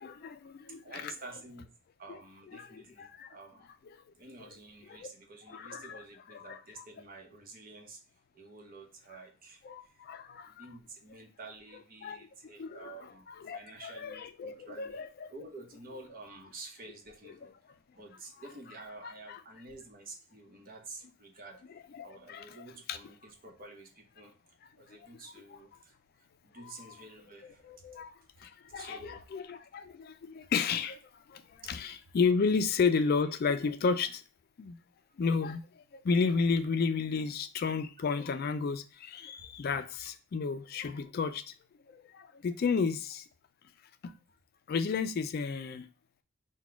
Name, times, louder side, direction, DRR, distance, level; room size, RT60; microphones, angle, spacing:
voice 1, 0.0-1.1 2.5-3.3 4.9-5.1 5.5-6.0 6.3-6.8 9.6-10.7 12.0-12.2 12.6-13.0 13.3-15.3 19.0-19.4 21.9-22.6 22.9-23.0 26.6-26.7 27.6-28.1 28.4-31.0 31.3-31.4 31.7-34.2 34.6-34.8 35.2-35.6 35.9-41.4 41.9-43.2 44.7-45.9, left 5 dB, 50° left, 0.3 m, -32 dB
voice 2, 0.8-1.7 2.0-3.7 4.1-8.0 8.3-10.1 10.5-15.0 15.3-17.5 17.9-21.6 22.0-27.7 28.4-29.3 31.6-31.8 39.3-39.4, right 3 dB, 50° right, 0.9 m, -50 dB
4.0 x 2.2 x 4.6 m
head